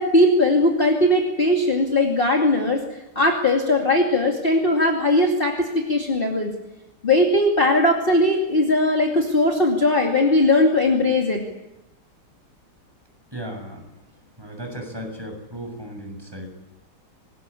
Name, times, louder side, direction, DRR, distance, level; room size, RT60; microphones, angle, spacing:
voice 1, 0.0-2.8 3.2-6.5 7.0-11.4, left 1 dB, 25° left, 1 dB, 2.6 m, -19 dB
voice 2, 13.3-13.8 14.4-16.5, right 1 dB, 10° right, 2 dB, 7.0 m, -35 dB
26.5 x 20.5 x 8.5 m, 0.96 s
omnidirectional pair, 2.4 m